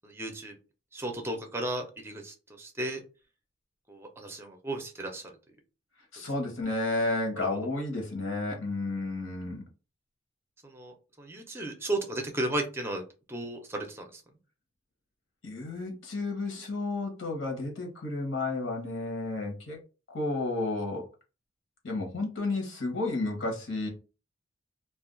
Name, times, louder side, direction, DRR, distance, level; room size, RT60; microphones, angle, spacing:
voice 1, 0.0-0.6 0.9-3.0 3.9-5.4 7.5-7.6 10.6-13.0 13.3-14.2, right 1 dB, 10° right, 4 dB, 0.5 m, -35 dB
voice 2, 6.1-9.6 15.4-19.8 20.1-21.1 21.8-23.9, left 2 dB, 85° left, 1 dB, 1.0 m, -32 dB
2.4 x 2.3 x 3.7 m, 0.33 s
head